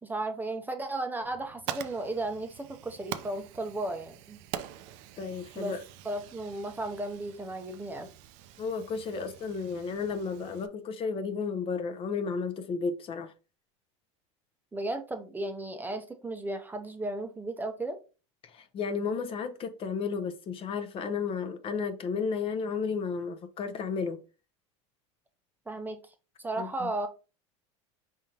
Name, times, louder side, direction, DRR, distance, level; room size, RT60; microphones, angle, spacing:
voice 1, 0.0-4.4 5.6-5.7 6.0-8.1 14.7-18.0 25.7-27.1, right 2 dB, 10° right, 0.6 m, -35 dB
Fire, 1.2-10.7, right 11 dB, 65° right, 0.5 m, -44 dB
voice 2, 5.2-5.8 8.6-13.3 18.4-24.2 26.6-26.9, left 5 dB, 35° left, 0.7 m, -33 dB
5.1 x 3.7 x 2.8 m
supercardioid pair, 115°, 16 cm